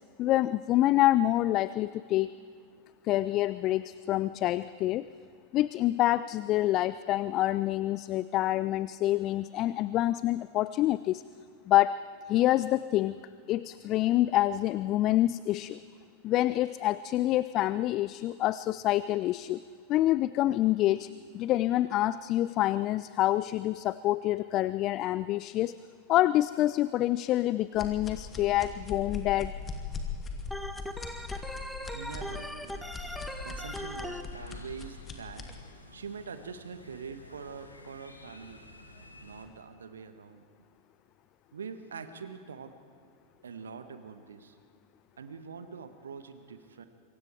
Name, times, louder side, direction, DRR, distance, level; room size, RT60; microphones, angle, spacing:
voice 1, 0.2-2.3 3.0-5.1 5.5-11.2 11.7-15.8 16.2-19.6 19.9-25.8 26.1-29.5, left 15 dB, 35° left, 17 dB, 0.4 m, -27 dB
sound 1, 27.7-35.6, left 4 dB, 20° left, 2.6 m, -40 dB
Organ, 30.5-34.2, equal, 5° left, 1.5 m, -39 dB
voice 2, 31.9-32.9 33.4-35.5 35.9-38.6 39.2-40.4 41.5-42.7 43.4-44.6 45.2-46.8, right 5 dB, 70° right, 10 dB, 1.5 m, -44 dB
sound 2, 32.7-39.5, left 2 dB, 85° left, 2.2 m, -52 dB
27.5 x 24.0 x 4.7 m, 2.3 s
figure-of-eight pair, 90°, 0 cm